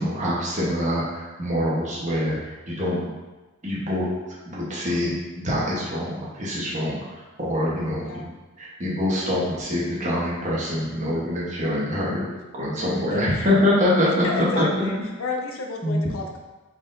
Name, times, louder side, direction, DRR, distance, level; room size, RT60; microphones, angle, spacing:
voice 1, 0.0-3.1 3.6-4.1 4.5-7.0 7.4-8.3 8.6-12.3 12.5-14.9 15.8-16.0, left 1 dB, 35° right, -6 dB, 1.1 m, -24 dB
voice 2, 12.8-13.5 14.2-16.4, left 3 dB, 70° left, 2 dB, 0.6 m, -32 dB
4.6 x 3.8 x 2.6 m, 1.2 s
head